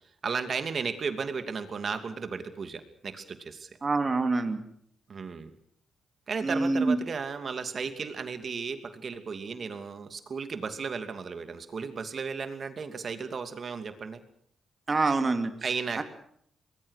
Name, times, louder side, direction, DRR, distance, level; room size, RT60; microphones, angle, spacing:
voice 1, 0.2-3.7 5.1-5.5 6.3-14.2 15.6-16.0, right 5 dB, 50° right, 8 dB, 2.7 m, -34 dB
voice 2, 3.8-4.6 6.4-7.0 14.9-15.5 16.0-16.1, right 3 dB, 30° right, 7 dB, 2.6 m, -25 dB
23.5 x 21.0 x 6.6 m, 0.67 s
cardioid pair, 95°, 0 cm